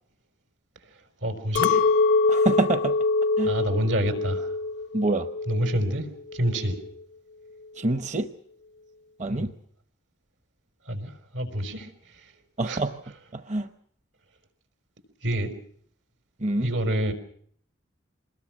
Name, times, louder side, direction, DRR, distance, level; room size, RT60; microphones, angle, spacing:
voice 1, 1.2-1.9 3.4-4.5 5.5-6.1 6.3-6.8 9.3-9.5 10.9-11.9 12.6-12.8 15.2-15.5 16.6-17.1, right 1 dB, 90° right, 8 dB, 5.1 m, -27 dB
Chink clink, 1.6-6.0 6.3-6.9, left 4 dB, 75° left, 0.9 m, -25 dB
voice 2, 2.3-2.9 3.4-3.5 4.9-5.3 7.8-8.3 9.2-9.5 12.6-13.0 13.3-13.7 16.4-16.7, right 2 dB, 40° right, 8 dB, 0.9 m, -26 dB
26.5 x 21.0 x 6.1 m, 0.63 s
head